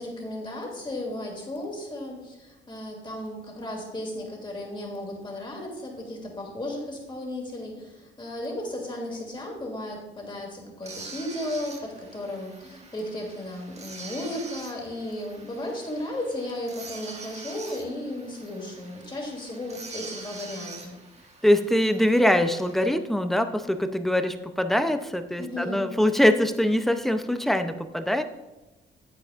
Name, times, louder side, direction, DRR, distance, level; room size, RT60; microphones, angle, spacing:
voice 1, 0.0-21.0 25.4-25.9, left 1 dB, 25° left, -1 dB, 2.6 m, -35 dB
sound 1, 10.8-22.9, right 3 dB, 35° right, 1.3 m, -44 dB
voice 2, 21.4-28.2, left 1 dB, ahead, 9 dB, 0.6 m, -23 dB
8.7 x 8.6 x 2.5 m, 1.1 s
cardioid pair, 90°, 20 cm